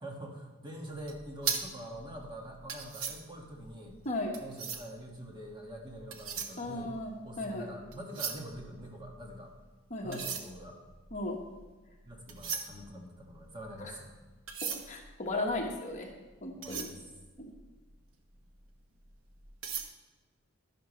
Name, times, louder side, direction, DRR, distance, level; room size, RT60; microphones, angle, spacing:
voice 1, 0.0-4.0 4.3-6.9 7.2-9.5 10.0-10.8 12.0-14.1 16.6-17.0, right 1 dB, 25° right, -1 dB, 1.8 m, -45 dB
sound 1, 1.0-5.1 5.8-7.5 7.8-9.5 10.0-18.0 18.5-18.6 19.0-19.9, right 6 dB, 75° right, 1.1 m, -40 dB
voice 2, 6.6-7.1 7.4-7.7 9.9-10.2 11.1-11.4 13.8-13.9 14.7-16.1 16.4-16.9 17.4-17.5, left 2 dB, 35° left, 0 dB, 1.4 m, -35 dB
11.5 x 11.5 x 3.2 m, 1.3 s
head